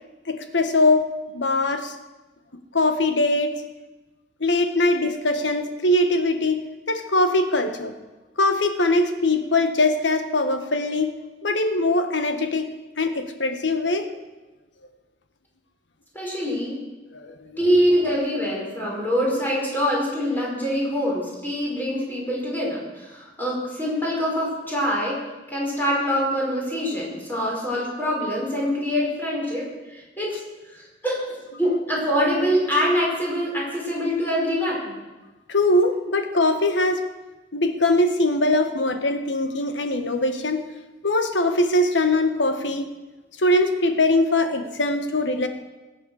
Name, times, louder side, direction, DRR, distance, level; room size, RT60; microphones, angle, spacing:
voice 1, 0.3-1.1 1.3-1.9 2.7-3.5 4.4-6.6 6.9-7.9 8.4-11.1 11.4-12.7 13.0-14.1 17.1-17.6 35.5-37.0 37.5-40.6 41.0-42.9 43.4-45.5, left 2 dB, 90° left, 7 dB, 1.5 m, -21 dB
voice 2, 16.1-16.8 17.6-25.2 25.5-30.4 30.7-35.0, equal, 10° left, -4 dB, 5.5 m, -24 dB
20.5 x 8.3 x 6.5 m, 1.2 s
head